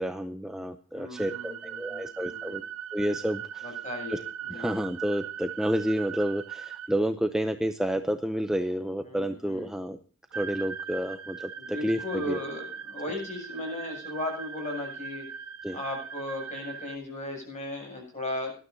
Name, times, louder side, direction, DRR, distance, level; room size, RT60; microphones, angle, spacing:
voice 1, 0.0-2.6 2.9-3.8 4.1-4.2 4.5-10.0 10.3-12.4 15.6-15.8, equal, 5° right, 7 dB, 0.5 m, -30 dB
voice 2, 0.9-2.6 3.6-4.8 9.1-9.7 11.6-15.3 15.7-18.5, left 1 dB, 35° left, 2 dB, 7.4 m, -36 dB
sound 1, 1.2-6.9 10.3-17.0, right 8 dB, 85° right, 0.9 m, -40 dB
19.0 x 12.5 x 2.7 m, 0.42 s
head